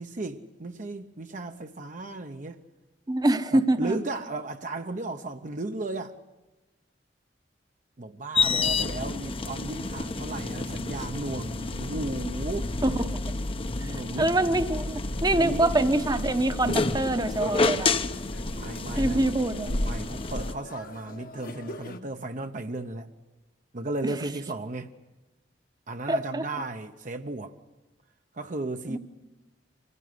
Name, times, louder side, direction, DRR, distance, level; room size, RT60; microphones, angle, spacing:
voice 1, 0.0-2.6 3.5-6.1 8.0-12.7 13.8-14.4 15.4-15.7 18.5-19.2 19.8-23.1 23.7-24.9 25.9-27.5 28.3-29.0, right 2 dB, 45° right, 0.8 m, -35 dB
voice 2, 3.1-4.0 12.8-13.1 13.8-17.9 19.0-19.8 24.0-24.1 26.1-26.4 28.9-29.0, right 2 dB, 25° right, 0.9 m, -25 dB
sound 1, 8.3-20.5, left 3 dB, 30° left, 0.8 m, -29 dB
sound 2, 15.1-22.0, left 1 dB, 55° left, 1.2 m, -45 dB
25.0 x 15.0 x 9.5 m
head